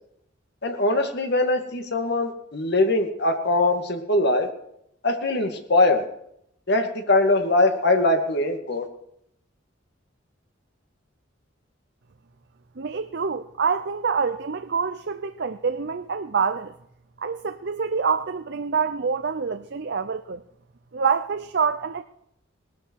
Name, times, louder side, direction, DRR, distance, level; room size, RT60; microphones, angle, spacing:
voice 1, 0.6-4.5 5.0-6.0 6.7-8.9, left 2 dB, 60° left, 2.3 m, -22 dB
voice 2, 12.8-16.8 17.2-20.4 20.9-22.0, right 5 dB, 60° right, 0.7 m, -26 dB
19.0 x 13.0 x 4.7 m
head